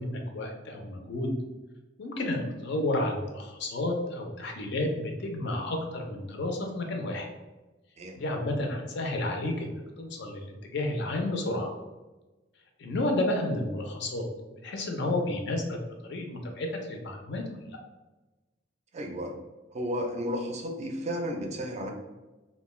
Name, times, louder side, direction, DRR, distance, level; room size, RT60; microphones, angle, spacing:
voice 1, 0.0-1.3 2.0-7.3 8.2-11.7 12.8-14.2 14.5-15.8 16.0-17.4 17.7-17.8, left 1 dB, 65° left, 3 dB, 0.5 m, -31 dB
voice 2, 18.9-19.3 19.7-21.9, equal, 35° right, 2 dB, 0.4 m, -33 dB
2.3 x 2.2 x 3.1 m, 1.1 s
head